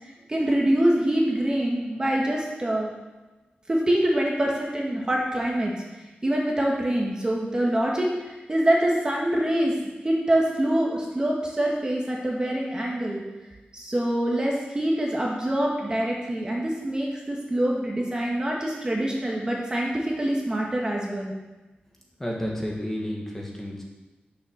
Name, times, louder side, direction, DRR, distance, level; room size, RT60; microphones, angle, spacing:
voice 1, 0.0-2.9 3.7-5.7 6.2-9.7 10.0-13.2 13.7-21.3, right 1 dB, 25° right, -2 dB, 1.7 m, -25 dB
voice 2, 22.2-23.8, equal, 10° left, -2 dB, 1.9 m, -31 dB
9.6 x 7.1 x 6.3 m, 1.1 s
wide cardioid pair, 145°, 3 cm